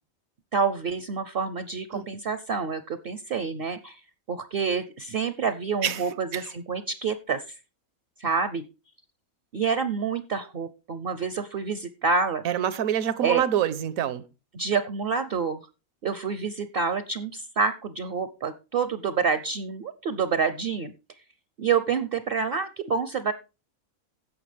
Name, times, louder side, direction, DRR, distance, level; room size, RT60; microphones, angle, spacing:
voice 1, 0.5-4.0 4.3-7.6 8.2-8.6 9.5-12.4 13.2-13.4 14.5-15.6 16.0-20.9 21.6-23.3, right 5 dB, 50° right, 0.7 m, -28 dB
voice 2, 12.4-14.2, right 10 dB, 80° right, 1.2 m, -26 dB
16.0 x 5.8 x 3.3 m
omnidirectional pair, 1.5 m